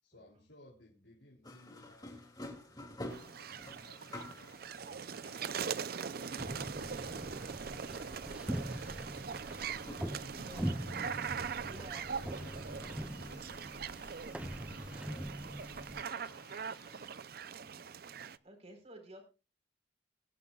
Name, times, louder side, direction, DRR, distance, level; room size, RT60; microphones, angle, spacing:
voice 1, 0.0-2.2 2.7-3.1 3.4-8.1 8.5-11.8 12.1-17.9, left 1 dB, 85° left, -1 dB, 3.3 m, -61 dB
sound 1, 1.4-17.2, left 1 dB, 25° left, 2.7 m, -53 dB
sound 2, 3.1-18.4, right 6 dB, 60° right, 0.5 m, -42 dB
sound 3, 6.4-16.0, right 1 dB, 5° right, 0.5 m, -42 dB
voice 2, 10.4-10.9 11.6-12.1 18.4-19.2, right 1 dB, 40° right, 5 dB, 4.3 m, -52 dB
22.5 x 10.5 x 2.4 m, 0.31 s
head